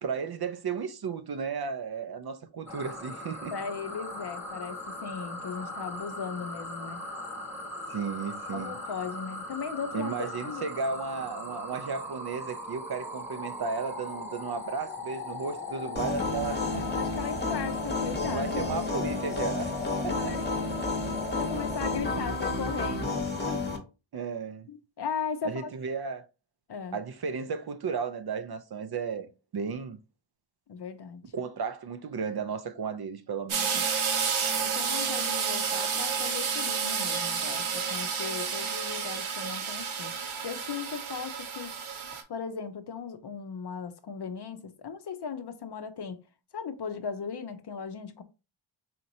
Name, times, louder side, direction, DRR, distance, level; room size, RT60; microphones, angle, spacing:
voice 1, 0.0-3.5 7.9-8.8 9.9-16.9 18.3-19.8 20.0-20.3 22.2-22.3 24.1-24.7 25.4-26.2 26.9-30.0 31.3-33.8, right 5 dB, 50° right, 0.5 m, -34 dB
sound 1, 2.7-22.0, left 1 dB, 5° right, 1.0 m, -39 dB
voice 2, 3.5-7.0 8.5-10.1 10.4-10.7 16.9-18.7 20.0-20.5 21.4-23.6 24.7-25.7 26.7-27.0 30.7-31.2 34.6-40.1 40.4-41.7 42.3-46.2 46.5-48.2, left 6 dB, 55° left, 0.6 m, -37 dB
sound 2, 16.0-23.8, left 3 dB, 20° left, 0.9 m, -31 dB
sound 3, 33.5-42.2, right 6 dB, 70° right, 0.8 m, -30 dB
4.2 x 2.9 x 2.6 m
wide cardioid pair, 85°, 50 cm